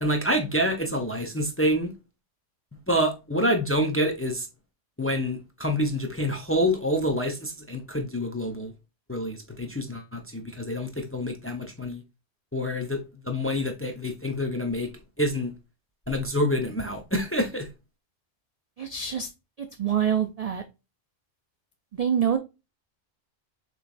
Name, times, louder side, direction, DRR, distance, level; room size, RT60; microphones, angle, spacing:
voice 1, 0.0-1.9 2.9-4.5 5.0-8.7 9.1-12.0 12.5-14.9 15.2-15.5 16.1-17.7, equal, 15° left, 0.4 m, -27 dB
voice 2, 18.8-19.3 19.6-20.6 21.9-22.4, right 8 dB, 65° right, 0.3 m, -26 dB
6.6 x 3.1 x 2.5 m
omnidirectional pair, 1.2 m